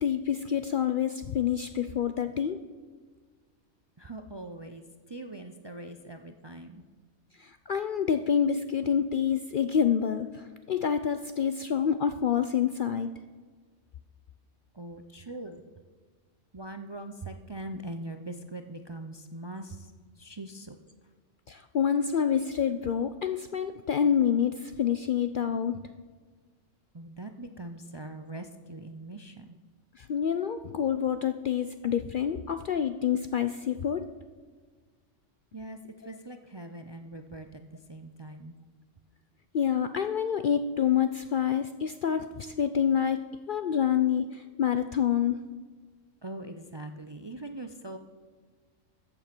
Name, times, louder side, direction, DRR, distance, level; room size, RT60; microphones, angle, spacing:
voice 1, 0.0-2.6 7.4-13.1 21.5-25.8 30.0-34.0 39.5-43.2 43.5-45.4, left 8 dB, 60° left, 9 dB, 0.5 m, -27 dB
voice 2, 4.0-6.8 14.7-15.7 16.5-20.8 26.9-29.6 35.5-38.6 46.2-48.0, right 1 dB, 30° right, 7 dB, 0.5 m, -42 dB
14.0 x 7.9 x 6.0 m, 1.5 s
omnidirectional pair, 1.3 m